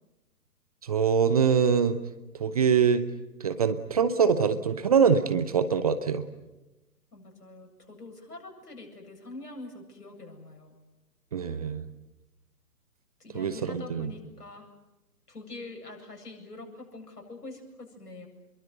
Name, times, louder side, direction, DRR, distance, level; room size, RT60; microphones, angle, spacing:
voice 1, 0.8-2.0 2.4-3.0 3.4-6.2 11.3-11.9 13.4-14.1, right 6 dB, 25° right, 11 dB, 0.8 m, -24 dB
voice 2, 7.1-10.8 13.2-14.6 15.3-18.3, left 2 dB, 70° left, 2 dB, 8.0 m, -44 dB
27.5 x 23.0 x 8.0 m, 1.0 s
figure-of-eight pair, 135°, 48 cm